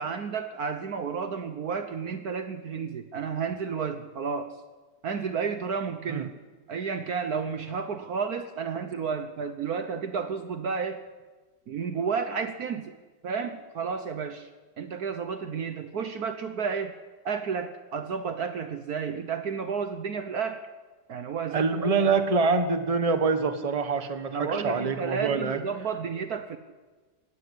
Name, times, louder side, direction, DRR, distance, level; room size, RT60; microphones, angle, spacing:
voice 1, 0.0-4.6 5.0-6.3 6.7-11.0 11.7-12.9 13.2-14.5 14.8-16.9 17.2-20.7 21.1-22.1 24.3-26.6, right 6 dB, 60° right, 9 dB, 1.4 m, -31 dB
voice 2, 21.5-25.6, right 4 dB, 20° right, 9 dB, 1.3 m, -25 dB
17.5 x 17.5 x 10.0 m, 1.3 s
omnidirectional pair, 2.0 m